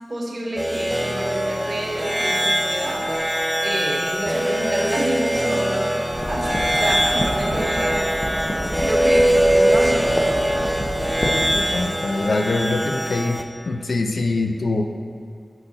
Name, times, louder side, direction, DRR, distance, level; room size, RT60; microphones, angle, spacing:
voice 1, 0.1-6.0 6.3-10.8, right 1 dB, 45° right, -1 dB, 0.9 m, -28 dB
sound 1, 0.6-13.4, right 1 dB, 5° right, 0.3 m, -22 dB
sound 2, 0.8-12.2, right 1 dB, 80° right, 0.7 m, -38 dB
sound 3, 6.1-11.7, left 1 dB, 40° left, 0.6 m, -29 dB
voice 2, 11.5-14.9, left 2 dB, 75° left, 6 dB, 0.3 m, -24 dB
5.9 x 4.1 x 3.9 m, 2.2 s
wide cardioid pair, 65°, 0 cm